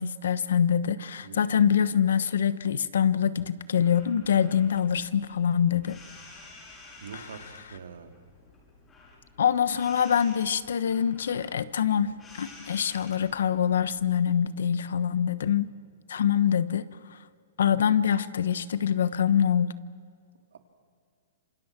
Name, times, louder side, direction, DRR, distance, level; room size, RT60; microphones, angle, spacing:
voice 1, 0.0-6.0 7.1-7.3 9.4-15.7 16.1-16.8 17.6-19.7, left 8 dB, 80° left, 14 dB, 1.1 m, -25 dB
voice 2, 1.2-1.6 7.0-8.1 20.5-20.6, right 7 dB, 90° right, 5 dB, 2.7 m, -44 dB
sound 1, 3.7-14.2, left 3 dB, 15° left, 6.7 m, -51 dB
27.5 x 25.5 x 6.1 m, 2.2 s
hypercardioid pair, 155°, 0 cm